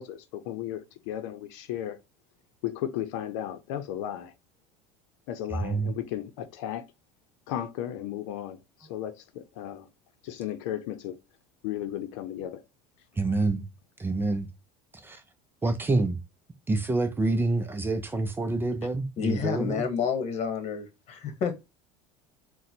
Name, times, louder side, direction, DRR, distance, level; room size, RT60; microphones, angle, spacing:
voice 1, 0.0-2.0 2.6-4.3 5.3-6.9 7.5-9.9 10.2-11.2 11.6-12.6, left 11 dB, 75° left, 0.7 m, -35 dB
voice 2, 5.5-6.0 13.2-13.7 14.0-14.5 14.9-15.2 15.6-16.2 16.7-19.8, right 2 dB, 15° right, 0.5 m, -27 dB
voice 3, 19.2-21.6, left 6 dB, 45° left, 1.3 m, -29 dB
3.8 x 2.2 x 4.4 m
supercardioid pair, 115°, 16 cm